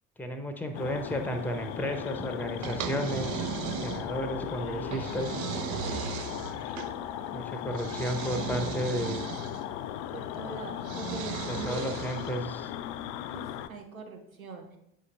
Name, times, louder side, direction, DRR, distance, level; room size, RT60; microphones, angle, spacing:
voice 1, 0.2-3.5 3.8-5.4 7.3-9.2 11.5-12.7, equal, 5° left, 6 dB, 0.8 m, -33 dB
sound 1, 0.7-13.7, left 11 dB, 60° left, 0.5 m, -37 dB
sound 2, 2.6-4.3 4.9-6.9 7.7-9.6 10.8-12.4, right 9 dB, 50° right, 0.6 m, -36 dB
sound 3, 4.1-7.4, right 2 dB, 80° left, 1.0 m, -47 dB
voice 2, 10.1-11.9 13.3-14.8, right 3 dB, 90° right, 4 dB, 0.7 m, -42 dB
8.2 x 5.3 x 2.5 m, 0.80 s
figure-of-eight pair, 45°, 41 cm